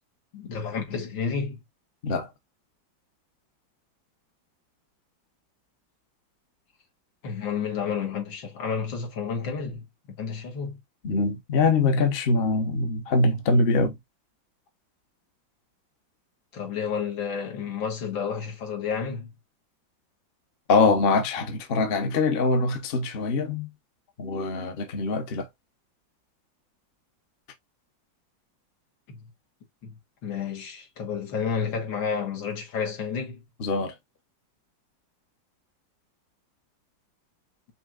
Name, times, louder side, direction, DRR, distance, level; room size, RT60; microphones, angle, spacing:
voice 1, 0.3-1.6 7.2-10.8 16.5-19.3 29.1-29.2 29.8-33.4, left 6 dB, 85° left, 2.1 m, -31 dB
voice 2, 11.0-14.0 20.7-23.7 24.2-25.5 33.6-33.9, left 3 dB, 45° left, 0.7 m, -23 dB
5.6 x 3.1 x 2.4 m
omnidirectional pair, 2.1 m